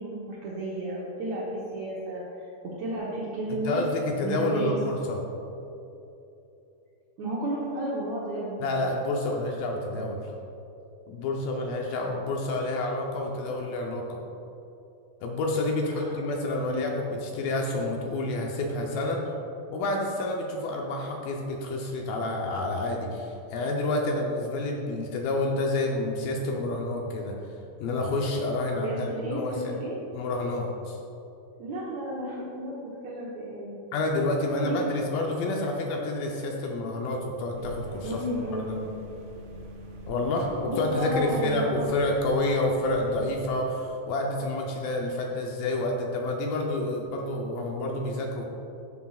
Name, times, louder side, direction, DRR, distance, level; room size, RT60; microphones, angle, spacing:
voice 1, 0.0-1.5 1.7-3.8 4.2-4.8 7.2-8.7 15.9-16.3 16.7-16.9 28.8-30.0 31.6-33.8 34.6-34.8 38.0-38.9 40.6-41.9, right 1 dB, 85° right, -6 dB, 1.5 m, -33 dB
voice 2, 3.5-5.2 8.6-10.3 11.1-14.2 15.2-19.2 19.7-27.3 27.8-29.5 30.1-31.0 33.9-38.2 38.5-38.7 40.1-48.4, left 2 dB, 75° left, 0 dB, 2.2 m, -29 dB
sound 1, 37.6-43.5, right 1 dB, 70° right, 2.1 m, -44 dB
13.0 x 7.8 x 2.4 m, 2.9 s
omnidirectional pair, 4.8 m